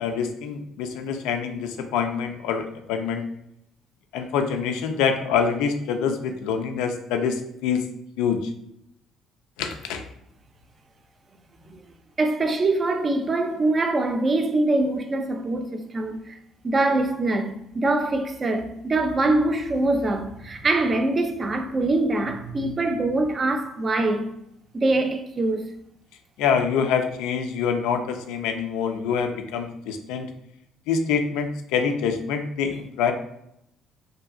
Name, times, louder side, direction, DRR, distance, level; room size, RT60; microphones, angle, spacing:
voice 1, 0.0-3.2 4.1-7.9 8.2-8.5 9.6-10.0 26.4-30.3 30.9-33.1, left 6 dB, 80° left, 0.3 m, -25 dB
voice 2, 12.2-16.4 16.6-24.3 24.7-25.7, right 2 dB, 35° right, 0.4 m, -24 dB
2.7 x 2.5 x 2.4 m
supercardioid pair, 65°, 0 cm